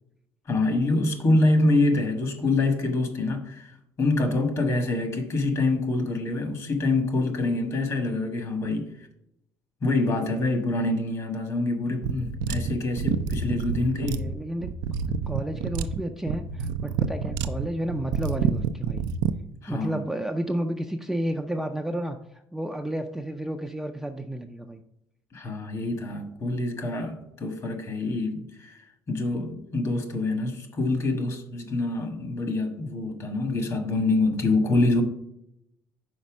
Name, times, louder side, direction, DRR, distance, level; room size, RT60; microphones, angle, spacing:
voice 1, 0.5-8.9 9.8-14.2 19.6-20.0 25.3-28.8 29.1-35.0, left 2 dB, 40° left, 1.4 m, -26 dB
sound 1, 12.0-19.4, right 6 dB, 85° right, 0.4 m, -28 dB
voice 2, 14.0-14.7 15.0-19.0 19.7-24.8, right 1 dB, 5° right, 0.4 m, -31 dB
5.4 x 4.3 x 6.0 m
cardioid pair, 115°, 7 cm